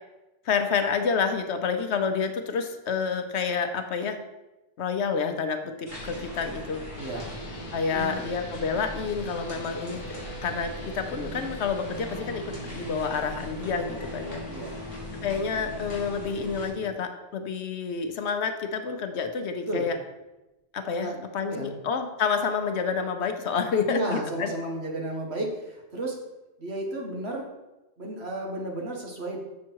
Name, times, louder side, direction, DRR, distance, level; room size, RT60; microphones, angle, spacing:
voice 1, 0.4-4.2 4.8-6.8 7.7-10.0 10.4-14.4 15.2-20.0 20.7-24.5, left 5 dB, 70° left, 7 dB, 1.0 m, -29 dB
sound 1, 5.9-16.7, equal, 25° right, 3.4 m, -40 dB
voice 2, 6.9-7.3 7.9-8.3 14.5-14.8 19.7-19.8 21.0-21.2 21.5-21.7 23.9-26.2 26.6-27.4 28.0-29.4, right 1 dB, 65° right, 0 dB, 1.7 m, -33 dB
sound 2, 7.0-16.9, left 1 dB, 45° left, 1.0 m, -42 dB
7.3 x 6.2 x 4.6 m, 1.0 s
omnidirectional pair, 1.2 m